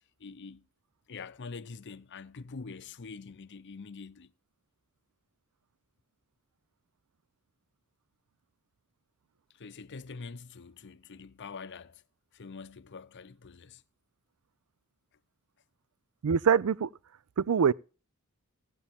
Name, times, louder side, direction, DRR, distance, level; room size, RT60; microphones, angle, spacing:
voice 1, 0.2-0.7 1.1-4.3 9.6-12.0 12.3-13.8, left 4 dB, 55° left, 0.7 m, -45 dB
voice 2, 16.2-16.9 17.4-17.7, right 7 dB, 80° right, 0.4 m, -24 dB
16.5 x 8.4 x 3.5 m
head